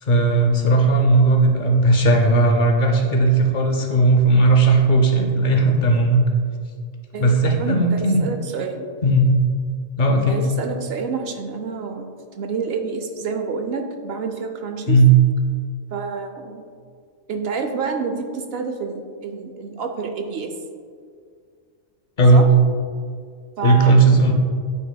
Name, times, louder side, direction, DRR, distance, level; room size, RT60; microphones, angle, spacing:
voice 1, 0.0-6.2 7.2-8.2 9.0-9.3 10.0-10.4 14.9-15.2 22.2-22.5 23.6-24.3, right 2 dB, 45° left, 2 dB, 0.7 m, -16 dB
voice 2, 7.1-8.9 10.3-15.0 15.9-16.6 17.3-20.5 22.3-22.4 23.6-23.9, right 5 dB, 60° right, 5 dB, 0.7 m, -28 dB
9.4 x 5.5 x 2.2 m, 2.1 s
omnidirectional pair, 1.4 m